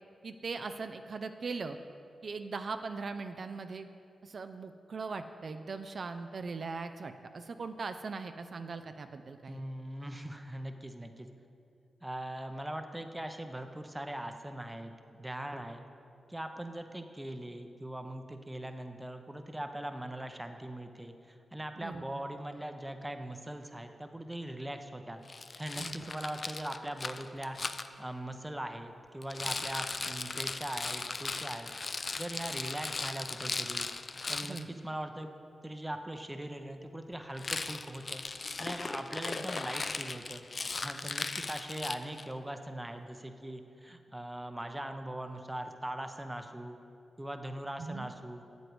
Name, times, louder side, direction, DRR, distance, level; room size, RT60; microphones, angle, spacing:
voice 1, 0.2-1.8 2.2-3.9 4.2-9.6 21.8-22.0 25.8-26.1 34.4-34.7 47.8-48.1, right 4 dB, 60° right, 8 dB, 0.3 m, -40 dB
voice 2, 9.5-11.3 12.0-15.8 16.3-25.2 25.6-27.6 28.0-31.7 32.2-33.9 34.3-35.3 35.6-38.2 38.6-40.4 40.8-46.8 47.2-48.5, right 1 dB, 15° right, 6 dB, 0.6 m, -41 dB
Rattle, 25.3-27.9 29.2-34.6 37.3-42.3, left 3 dB, 50° left, 0.3 m, -38 dB
7.9 x 7.9 x 3.1 m, 2.6 s
supercardioid pair, 45°, 0 cm